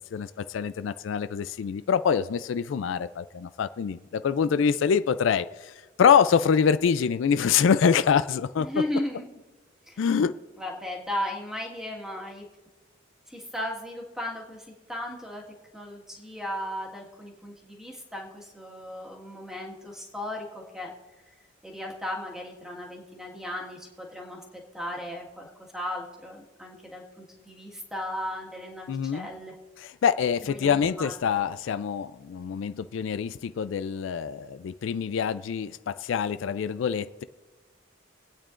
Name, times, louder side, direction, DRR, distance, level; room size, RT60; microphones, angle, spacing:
voice 1, 0.1-5.7 6.0-8.7 10.0-10.3 28.9-29.3 29.8-37.2, left 7 dB, 85° left, 14 dB, 0.3 m, -25 dB
voice 2, 8.6-9.4 9.9-10.0 10.6-12.4 13.3-15.4 15.7-20.9 21.6-24.4 24.7-25.5 25.7-29.5 30.4-31.1, left 1 dB, 5° right, -2 dB, 1.6 m, -36 dB
24.5 x 8.9 x 2.5 m, 1.2 s
head